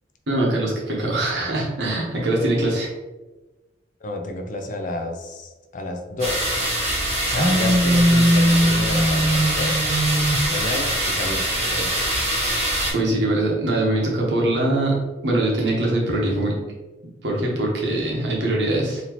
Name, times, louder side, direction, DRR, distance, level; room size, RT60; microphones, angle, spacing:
voice 1, 0.3-2.9 12.9-15.0 15.2-16.6 17.2-19.0, right 1 dB, 80° right, -2 dB, 1.1 m, -22 dB
voice 2, 4.0-6.7 7.2-9.7 10.5-12.0, left 2 dB, 45° left, 4 dB, 0.5 m, -30 dB
sound 1, 6.2-12.9, right 1 dB, 40° right, 1.1 m, -24 dB
Telephone, 7.4-10.5, equal, 15° right, 0.4 m, -19 dB
4.1 x 2.8 x 2.9 m, 1.1 s
head